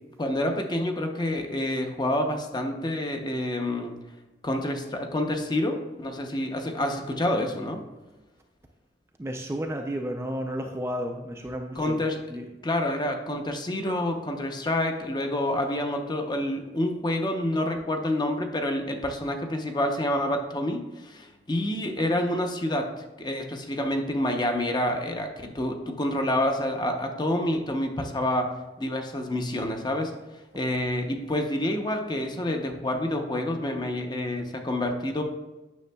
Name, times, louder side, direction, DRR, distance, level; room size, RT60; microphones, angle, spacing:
voice 1, 0.2-3.9 4.4-7.8 11.8-12.2 12.6-22.9 23.2-28.5 28.8-30.1 30.5-35.2, left 1 dB, 25° left, 4 dB, 0.6 m, -28 dB
voice 2, 9.2-12.0 12.3-12.4, equal, 15° right, 2 dB, 0.4 m, -32 dB
9.3 x 6.2 x 2.2 m, 1.1 s
head